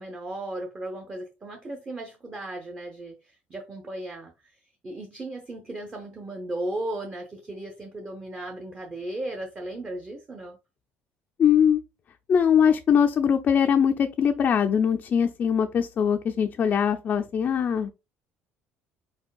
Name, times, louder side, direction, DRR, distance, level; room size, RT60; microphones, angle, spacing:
voice 1, 0.0-4.5 4.8-10.6, right 1 dB, 25° right, 0.7 m, -36 dB
voice 2, 11.4-11.8 12.3-17.9, left 7 dB, 35° left, 0.4 m, -22 dB
4.5 x 4.3 x 2.3 m
cardioid pair, 125°, 5 cm